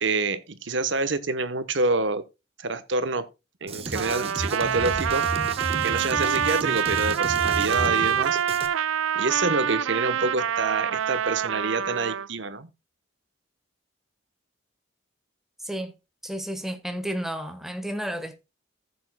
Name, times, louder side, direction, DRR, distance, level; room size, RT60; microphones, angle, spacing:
voice 1, 0.0-2.2 2.6-3.3 3.6-5.3 5.8-8.4 9.1-12.7, right 3 dB, 65° right, 1.0 m, -27 dB
Drum kit, 3.7-8.7, right 2 dB, 30° right, 1.1 m, -33 dB
Trumpet, 3.9-12.3, right 9 dB, 85° right, 0.4 m, -26 dB
voice 2, 16.2-18.4, equal, ahead, 1.2 m, -32 dB
15.0 x 7.1 x 2.2 m
head